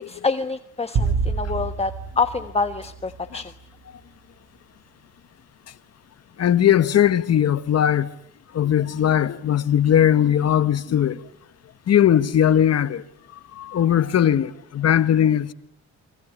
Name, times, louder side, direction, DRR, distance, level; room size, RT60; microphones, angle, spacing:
voice 1, 0.1-3.5, left 4 dB, 20° left, 1.3 m, -26 dB
sound 1, 0.9-3.4, right 4 dB, 70° right, 4.0 m, -27 dB
voice 2, 6.4-8.1 8.5-11.2 11.9-13.0 13.5-15.5, left 10 dB, 55° left, 1.4 m, -19 dB
28.5 x 25.0 x 8.4 m
cardioid pair, 90°, 30 cm